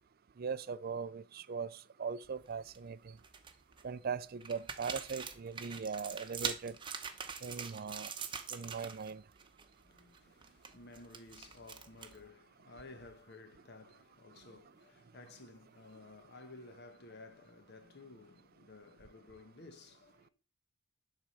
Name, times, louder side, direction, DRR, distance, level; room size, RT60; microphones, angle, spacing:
voice 1, 0.4-3.2 3.8-6.7 7.4-8.1 8.5-9.2, right 5 dB, 50° right, 0.4 m, -40 dB
sound 1, 2.3-2.8 3.2-3.8 4.4-9.1 9.4-9.6 10.0-12.3, right 6 dB, 25° right, 0.9 m, -43 dB
voice 2, 9.8-20.3, left 3 dB, 55° left, 1.1 m, -55 dB
10.5 x 4.3 x 6.4 m
head